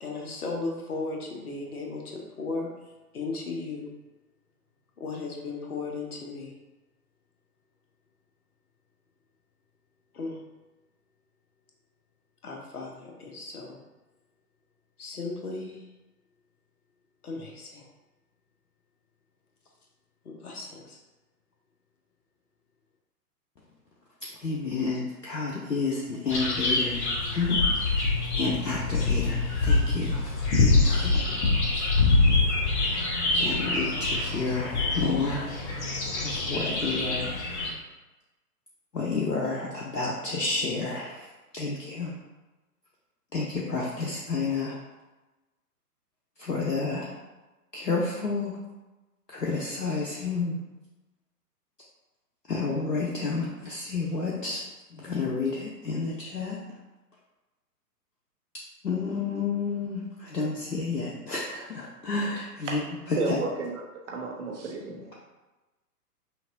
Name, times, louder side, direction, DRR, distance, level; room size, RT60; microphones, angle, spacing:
voice 1, 0.0-2.7 3.1-3.9 5.0-6.5 10.1-10.4 12.4-13.8 15.0-15.8 17.2-17.8 20.2-21.0, left 3 dB, 65° left, 0 dB, 1.1 m, -36 dB
voice 2, 24.4-27.0 27.3-28.0 28.3-30.3 30.6-31.2 33.3-35.5 36.2-37.3 38.9-41.2 41.5-42.1 43.3-44.8 46.4-47.1 47.7-48.6 49.3-50.6 52.5-54.6 55.0-56.6 58.8-62.8 63.1-63.2, left 4 dB, 90° left, -4 dB, 0.8 m, -30 dB
sound 1, 26.3-37.7, left 3 dB, 45° left, 1.2 m, -25 dB
voice 3, 63.2-63.8 64.1-65.1, right 3 dB, 50° right, -1 dB, 1.1 m, -31 dB
5.8 x 2.6 x 2.6 m, 1.1 s
figure-of-eight pair, 120°, 48 cm